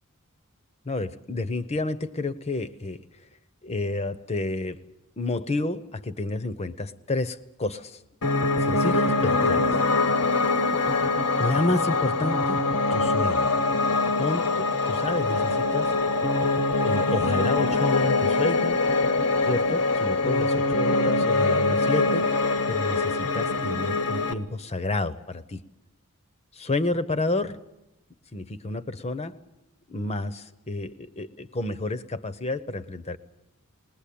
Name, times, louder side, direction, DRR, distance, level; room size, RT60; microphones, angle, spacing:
voice 1, 0.9-3.0 3.6-4.8 5.2-8.0 8.6-9.8 11.4-12.6 12.9-13.5 14.2-15.9 16.8-18.8 19.5-25.6 26.5-27.6 28.3-29.3 29.9-33.2, left 2 dB, 30° left, 14 dB, 0.8 m, -30 dB
Piano, 8.2-24.3, left 3 dB, 80° left, 1.2 m, -23 dB
21.0 x 19.5 x 8.6 m, 0.90 s
head